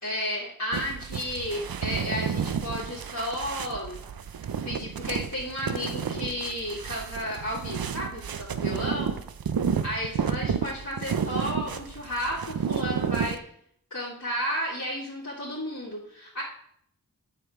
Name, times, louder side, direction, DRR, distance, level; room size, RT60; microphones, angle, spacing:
voice 1, 0.0-4.0 4.6-9.1 9.8-13.4 13.9-16.4, equal, 55° left, -8 dB, 2.4 m, -33 dB
sound 1, 0.7-13.4, right 7 dB, 85° right, 0.6 m, -31 dB
8.1 x 6.7 x 3.6 m, 0.66 s
wide cardioid pair, 50°, 35 cm